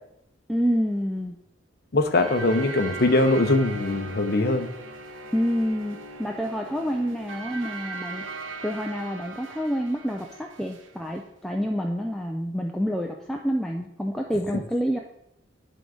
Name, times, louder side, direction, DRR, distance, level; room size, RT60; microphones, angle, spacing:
voice 1, 0.5-1.4 5.3-8.2 8.6-15.0, equal, ahead, 1 dB, 0.3 m, -28 dB
voice 2, 1.9-4.7 14.5-14.6, left 2 dB, 50° left, 8 dB, 0.6 m, -22 dB
sound 1, 2.1-10.9, right 2 dB, 75° right, 0.8 m, -39 dB
11.0 x 3.8 x 3.7 m, 0.79 s
head